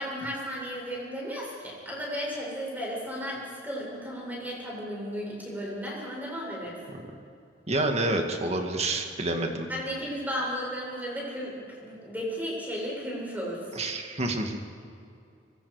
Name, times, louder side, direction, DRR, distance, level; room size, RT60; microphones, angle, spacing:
voice 1, 0.0-6.8 9.7-13.6, equal, 10° right, -4 dB, 7.9 m, -34 dB
voice 2, 7.7-9.7 13.7-14.6, right 2 dB, 35° right, 3 dB, 2.2 m, -28 dB
25.5 x 23.5 x 5.1 m, 2.5 s
head